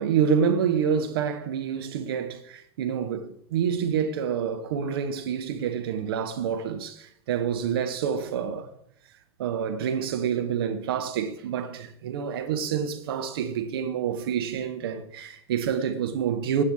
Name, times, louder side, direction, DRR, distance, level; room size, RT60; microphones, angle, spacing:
voice 1, 0.0-8.8 9.4-16.6, right 7 dB, 55° right, 1.2 m, -27 dB
16.5 x 9.1 x 3.7 m
figure-of-eight pair, 90°, 15 cm